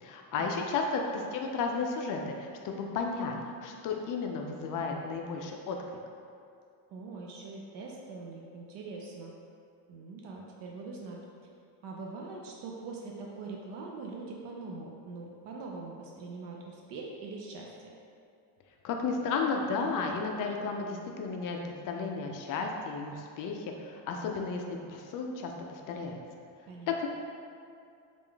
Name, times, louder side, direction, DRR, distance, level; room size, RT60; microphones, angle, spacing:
voice 1, 0.0-5.8 18.8-26.2 26.9-27.1, left 4 dB, 45° left, 2 dB, 0.4 m, -33 dB
voice 2, 6.9-9.3 9.9-11.2 11.8-17.7 26.7-27.0, right 3 dB, 60° right, -1 dB, 0.6 m, -42 dB
3.5 x 2.5 x 3.3 m, 2.4 s
cardioid pair, 115°, 47 cm